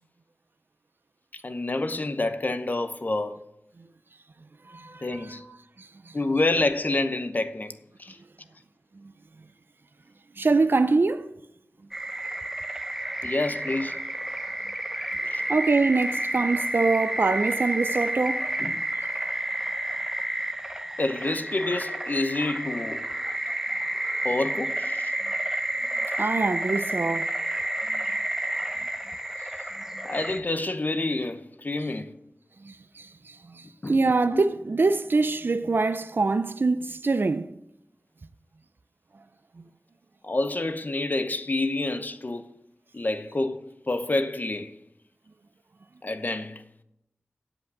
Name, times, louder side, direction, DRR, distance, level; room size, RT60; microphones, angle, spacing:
voice 1, 1.3-3.4 5.0-5.5 6.1-7.7 8.0-8.2 13.2-14.1 15.3-15.4 18.6-18.9 21.0-23.0 24.2-25.1 30.0-32.1 33.8-34.0 34.3-34.4 40.2-42.5 42.9-44.7 46.0-46.6, left 2 dB, 45° left, 0.9 m, -28 dB
voice 2, 4.7-5.3 5.8-6.1 10.4-11.3 15.5-18.5 26.2-27.3 27.9-28.0 32.6-37.5, right 3 dB, 55° right, 0.5 m, -24 dB
sound 1, 11.9-30.4, right 1 dB, 10° right, 0.9 m, -30 dB
8.2 x 7.7 x 8.6 m
wide cardioid pair, 60°, 4 cm